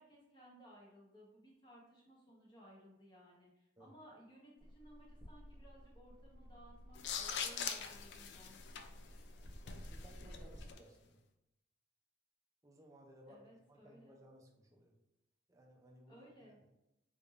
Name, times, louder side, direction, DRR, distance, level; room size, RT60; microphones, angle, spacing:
voice 1, 0.0-8.6 13.3-14.2 16.1-16.6, equal, 25° left, -4 dB, 1.0 m, -60 dB
sound 1, 4.6-10.7, equal, 50° right, 0.8 m, -54 dB
sound 2, 6.9-10.8, left 7 dB, 65° left, 0.4 m, -43 dB
voice 2, 9.6-11.2 12.6-13.4 13.7-14.9 15.5-16.7, right 1 dB, 15° right, 0 dB, 0.5 m, -61 dB
4.0 x 3.4 x 2.5 m, 0.89 s
head